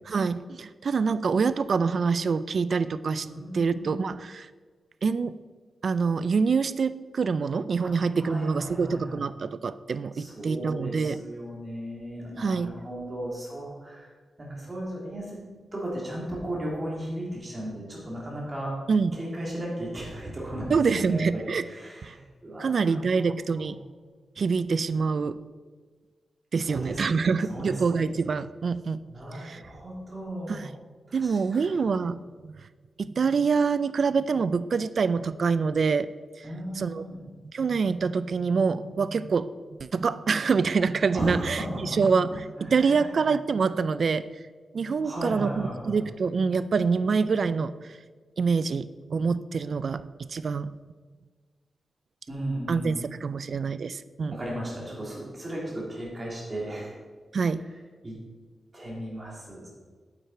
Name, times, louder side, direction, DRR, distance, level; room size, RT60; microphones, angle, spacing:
voice 1, 0.1-3.3 3.5-4.5 5.0-5.4 5.8-11.2 12.4-12.8 18.9-19.2 20.7-21.6 22.0-22.1 22.6-23.8 24.4-25.4 26.5-29.0 29.3-29.6 30.5-30.7 31.1-32.6 33.0-36.1 36.4-36.5 36.8-37.0 37.5-39.5 39.8-44.3 44.7-48.0 48.4-50.7 52.7-54.4 57.3-57.6, right 5 dB, 55° right, 15 dB, 0.3 m, -26 dB
voice 2, 3.2-4.0 8.2-9.2 10.1-14.0 14.4-15.4 15.7-18.7 19.1-23.7 26.5-28.1 29.1-30.7 31.1-31.7 36.4-37.2 41.1-42.0 42.6-43.1 45.0-46.0 52.3-53.0 54.3-57.0 58.0-58.2 58.7-59.7, right 1 dB, 25° right, -4 dB, 3.1 m, -36 dB
9.0 x 8.2 x 4.5 m, 1.5 s
wide cardioid pair, 135°, 0 cm